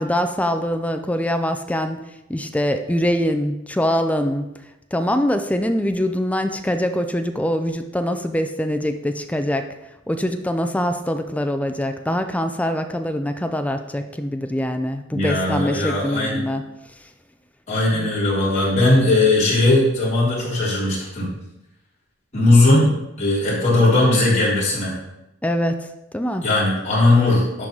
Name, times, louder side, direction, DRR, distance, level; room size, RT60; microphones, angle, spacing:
voice 1, 0.0-2.0 2.3-4.5 4.9-9.7 10.1-16.6 17.9-18.1 25.4-25.9 26.1-26.4, equal, 5° left, 7 dB, 0.5 m, -23 dB
voice 2, 15.1-16.4 17.7-21.3 22.3-22.9 23.2-24.9 26.4-27.6, left 2 dB, 40° left, -7 dB, 3.6 m, -18 dB
11.0 x 4.0 x 5.9 m, 0.92 s
head